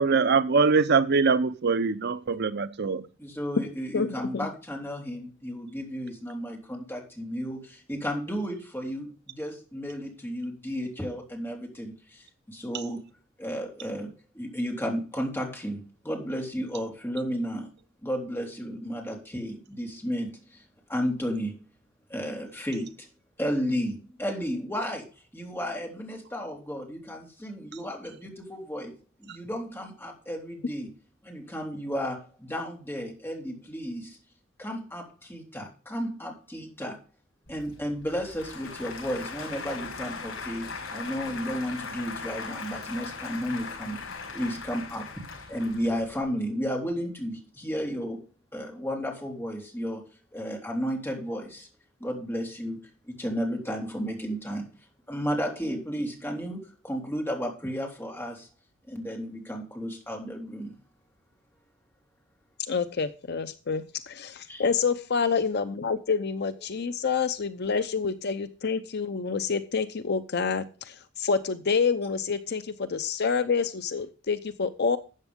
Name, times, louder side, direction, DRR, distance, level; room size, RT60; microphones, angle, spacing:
voice 1, 0.0-3.0, right 4 dB, 55° right, 13 dB, 0.7 m, -23 dB
voice 2, 3.2-13.1 13.4-17.7 18.0-20.6 20.9-21.6 22.1-23.1 23.4-25.1 25.3-28.9 29.2-30.9 31.2-34.2 34.6-37.0 37.5-44.0 44.3-45.1 45.5-48.2 48.5-50.0 50.3-51.7 52.0-54.7 55.1-58.5 58.9-60.7 64.5-64.7, equal, 10° left, 0 dB, 3.5 m, -33 dB
Applause / Crowd, 37.5-46.2, left 4 dB, 85° left, 5.1 m, -39 dB
voice 3, 62.7-75.0, left 5 dB, 55° left, 12 dB, 0.7 m, -28 dB
13.0 x 8.2 x 3.6 m, 0.34 s
head